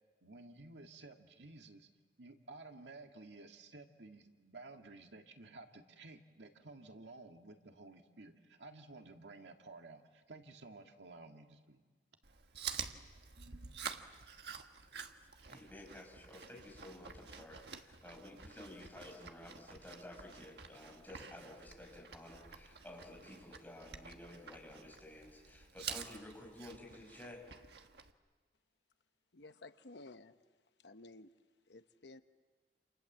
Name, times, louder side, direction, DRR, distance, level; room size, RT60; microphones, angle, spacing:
voice 1, 0.2-1.9 2.2-11.8, right 2 dB, 90° right, 4 dB, 2.0 m, -54 dB
Chewing mastication, 12.2-28.1, right 7 dB, 70° right, 1.4 m, -49 dB
voice 2, 15.5-27.4, left 1 dB, 10° left, -1 dB, 5.7 m, -53 dB
voice 3, 29.3-30.3 30.8-31.3 31.7-32.2, left 2 dB, 80° left, 10 dB, 1.0 m, -54 dB
28.5 x 28.0 x 7.4 m, 1.4 s
head